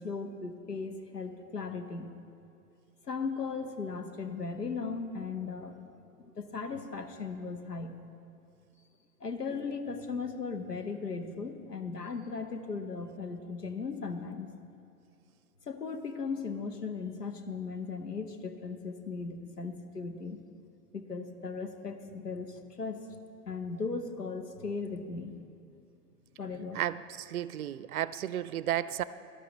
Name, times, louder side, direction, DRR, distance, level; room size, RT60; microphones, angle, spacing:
voice 1, 0.0-2.1 3.1-5.8 6.2-8.0 9.2-14.5 15.7-20.4 20.9-23.0 23.5-25.4 26.4-26.8, left 4 dB, 85° left, 7 dB, 1.1 m, -37 dB
voice 2, 26.7-29.0, right 11 dB, 65° right, 17 dB, 0.5 m, -33 dB
18.5 x 12.0 x 3.1 m, 2.5 s
figure-of-eight pair, 100°, 46 cm